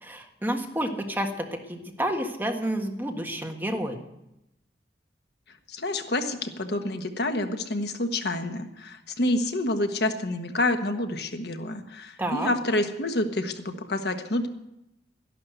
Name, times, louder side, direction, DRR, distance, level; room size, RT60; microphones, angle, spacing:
voice 1, 0.0-4.0 12.2-12.5, right 1 dB, 10° right, 3 dB, 1.6 m, -30 dB
voice 2, 5.7-14.5, left 1 dB, 65° left, 6 dB, 1.4 m, -28 dB
13.0 x 11.5 x 8.1 m, 0.86 s
head